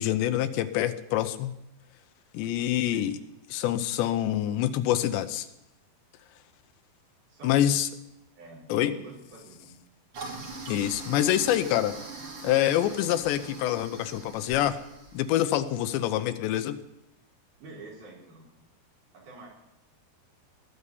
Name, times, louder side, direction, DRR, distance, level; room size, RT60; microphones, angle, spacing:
voice 1, 0.0-1.5 2.3-3.2 3.5-5.5 7.4-7.9 8.7-8.9 10.7-12.0 12.4-14.8 15.1-16.8, left 12 dB, 85° left, 10 dB, 3.0 m, -26 dB
voice 2, 8.3-9.8 17.6-18.5 19.1-19.5, right 2 dB, 60° right, -3 dB, 6.3 m, -47 dB
Toilet flush, 10.1-15.4, right 3 dB, 40° right, 3.1 m, -42 dB
20.0 x 7.0 x 9.8 m, 0.88 s
omnidirectional pair, 5.0 m